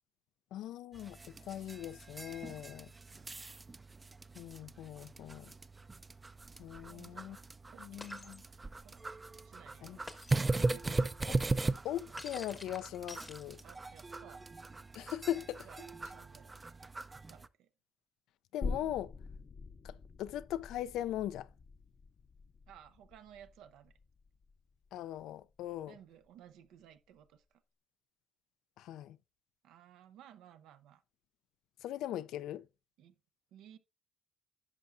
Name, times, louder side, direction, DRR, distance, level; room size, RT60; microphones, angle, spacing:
voice 1, 0.5-2.9 4.3-5.5 6.6-7.4 7.8-8.4 9.8-10.0 11.8-13.6 14.9-15.7 18.5-19.1 19.8-21.5 24.9-25.9 28.8-29.2 31.8-32.7, left 12 dB, 85° left, 0.3 m, -40 dB
sound 1, 0.9-17.5, right 3 dB, 25° right, 0.4 m, -39 dB
voice 2, 3.1-3.4 6.9-7.4 7.7-8.4 8.8-9.1 9.4-11.2 11.5-12.2 13.6-14.5 15.6-16.8 17.1-17.7 22.7-23.9 25.9-27.6 29.6-31.0 33.0-33.2 33.5-33.8, right 10 dB, 90° right, 0.6 m, -58 dB
Shatter, 8.0-8.4 10.1-10.6 12.2-13.9, left 2 dB, 15° left, 0.8 m, -49 dB
sound 2, 18.6-25.9 26.3-26.4, left 4 dB, 45° left, 0.6 m, -45 dB
10.5 x 5.8 x 2.5 m
cardioid pair, 90°, 0 cm